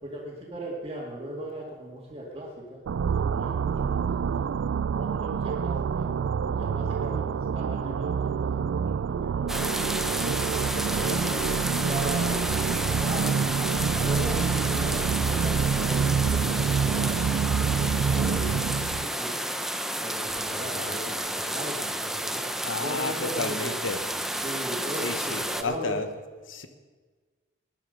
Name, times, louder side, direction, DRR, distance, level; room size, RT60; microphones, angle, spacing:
voice 1, 0.0-2.8 3.1-4.5 4.9-6.1 6.4-10.0 10.5-11.4 11.7-13.5 14.0-17.2 17.5-19.4 20.0-22.4 22.8-23.6 24.4-26.0, right 1 dB, 25° right, -7 dB, 2.4 m, -38 dB
sound 1, 2.9-19.1, right 6 dB, 75° right, 0.3 m, -27 dB
sound 2, 9.5-25.6, right 1 dB, ahead, 0.6 m, -31 dB
voice 2, 20.5-20.9 22.6-24.0 25.0-26.1 26.5-26.7, left 3 dB, 80° left, 9 dB, 1.2 m, -33 dB
19.0 x 10.5 x 5.3 m, 1.4 s
head